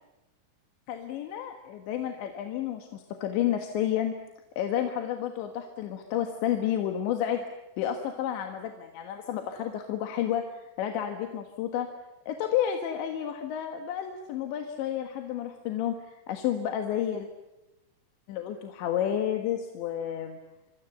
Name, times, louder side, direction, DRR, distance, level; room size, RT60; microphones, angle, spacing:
voice 1, 0.9-4.1 4.6-7.4 7.8-11.9 12.3-17.3 18.3-20.4, left 10 dB, 75° left, 5 dB, 3.7 m, -31 dB
26.5 x 25.0 x 8.1 m, 0.96 s
omnidirectional pair, 5.5 m